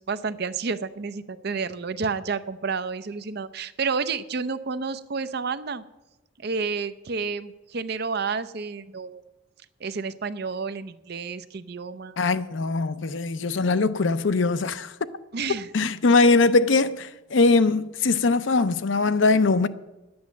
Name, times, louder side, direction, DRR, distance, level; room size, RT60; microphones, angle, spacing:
voice 1, 0.0-5.8 6.4-9.2 9.8-12.2 15.3-15.9, right 5 dB, 55° right, 0.6 m, -30 dB
voice 2, 12.2-14.9 15.7-19.7, left 3 dB, 70° left, 0.6 m, -21 dB
10.5 x 8.7 x 7.2 m
head